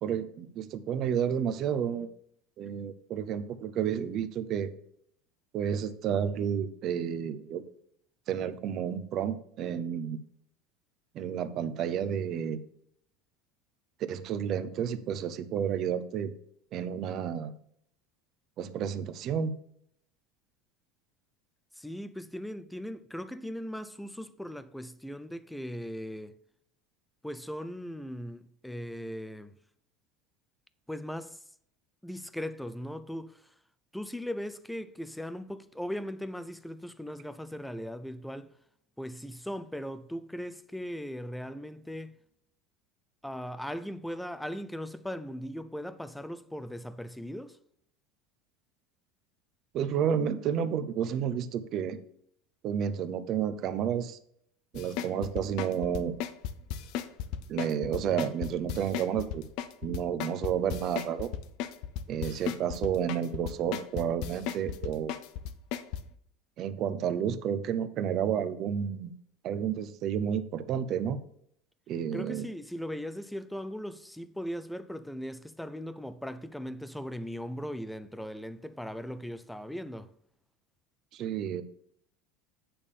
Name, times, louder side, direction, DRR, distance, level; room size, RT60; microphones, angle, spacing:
voice 1, 0.0-2.1 2.6-4.7 5.5-7.6 8.3-10.2 11.1-12.6 14.1-16.3 16.7-17.6 18.6-19.5 49.7-52.0 52.6-54.2 54.7-56.1 57.5-59.4 59.8-61.3 62.1-65.1 66.6-69.1 69.4-71.2 71.9-72.4 81.1-81.6, right 8 dB, 45° right, 0.7 m, -31 dB
voice 2, 21.8-26.3 27.2-29.5 30.9-31.4 32.0-33.5 33.9-38.5 39.0-42.1 43.2-47.6 72.1-80.1, equal, 5° left, 0.4 m, -39 dB
sound 1, 54.7-66.0, left 10 dB, 60° left, 0.6 m, -35 dB
8.6 x 3.6 x 6.8 m
supercardioid pair, 135°, 0 cm